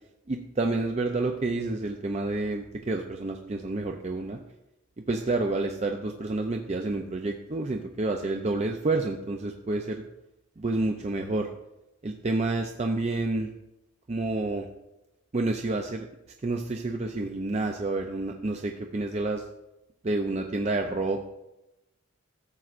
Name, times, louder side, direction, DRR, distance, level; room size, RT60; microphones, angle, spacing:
voice 1, 0.3-4.4 5.1-10.0 10.6-11.5 12.0-13.5 14.1-14.7 15.3-16.1 16.4-19.4 20.0-21.3, right 2 dB, 30° right, 3 dB, 0.4 m, -29 dB
13.5 x 7.5 x 2.5 m, 0.93 s
head